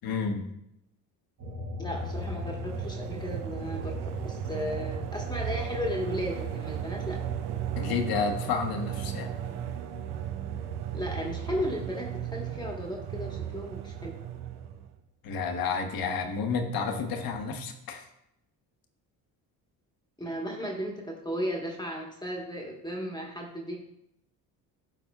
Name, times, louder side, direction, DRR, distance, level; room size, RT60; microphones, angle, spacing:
voice 1, 0.0-0.4 7.8-9.3 15.2-18.0, left 5 dB, 65° left, 5 dB, 1.1 m, -30 dB
sound 1, 1.4-12.3 12.7-14.1, left 1 dB, 50° right, 1.3 m, -42 dB
voice 2, 1.8-3.9 4.2-7.2 10.9-14.1 20.2-23.8, equal, 10° left, 0 dB, 1.2 m, -35 dB
sound 2, 1.9-14.9, right 10 dB, 80° right, 0.6 m, -36 dB
12.5 x 4.2 x 2.3 m, 0.82 s
cardioid pair, 90°, 38 cm